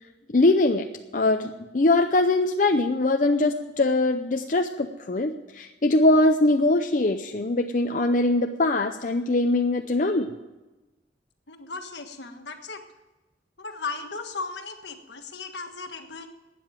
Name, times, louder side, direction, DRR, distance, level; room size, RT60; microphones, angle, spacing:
voice 1, 0.3-10.3, left 2 dB, 45° left, 4 dB, 0.6 m, -22 dB
voice 2, 11.5-12.8 13.6-16.3, left 4 dB, 75° left, 5 dB, 1.5 m, -36 dB
12.5 x 9.3 x 9.0 m, 1.1 s
head